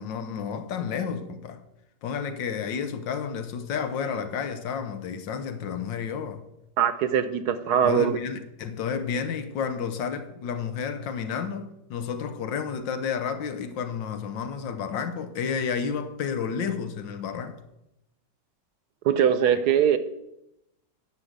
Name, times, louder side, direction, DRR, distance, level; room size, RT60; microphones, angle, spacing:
voice 1, 0.0-1.6 2.0-6.4 7.8-17.6, left 6 dB, 85° left, 1.7 m, -31 dB
voice 2, 6.8-8.2 19.0-20.0, right 8 dB, 65° right, 1.2 m, -22 dB
10.0 x 6.5 x 7.9 m
omnidirectional pair, 2.0 m